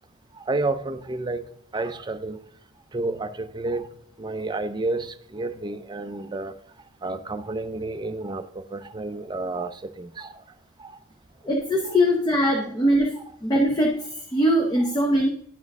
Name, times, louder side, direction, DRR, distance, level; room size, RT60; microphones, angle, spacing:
voice 1, 0.3-2.4 2.9-3.9 4.2-6.5 7.0-10.4 10.8-11.0 11.8-12.0 12.5-12.6 14.8-14.9, right 2 dB, 20° right, 9 dB, 0.4 m, -31 dB
voice 2, 11.4-13.1 13.4-15.3, equal, 20° left, 1 dB, 0.7 m, -21 dB
10.5 x 4.3 x 3.6 m, 0.66 s
head